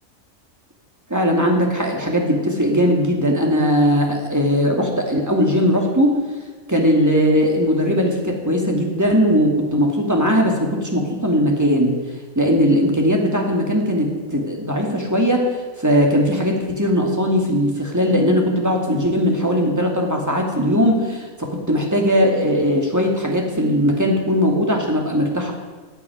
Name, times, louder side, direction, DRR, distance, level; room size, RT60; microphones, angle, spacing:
voice 1, 1.1-6.2 6.7-12.0 12.4-15.5 15.8-25.5, equal, 10° right, 0 dB, 2.6 m, -19 dB
15.0 x 8.4 x 9.5 m, 1.4 s
omnidirectional pair, 1.4 m